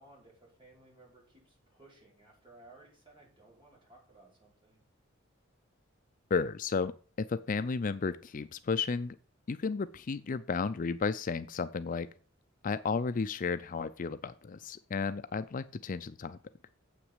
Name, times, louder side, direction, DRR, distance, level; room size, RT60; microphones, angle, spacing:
voice 1, 0.0-4.8, right 2 dB, 25° right, -3 dB, 5.4 m, -59 dB
voice 2, 6.3-6.9 7.2-9.2 9.5-12.1 12.6-16.4, left 5 dB, 40° left, 13 dB, 0.4 m, -33 dB
8.1 x 6.0 x 7.9 m, 0.40 s
head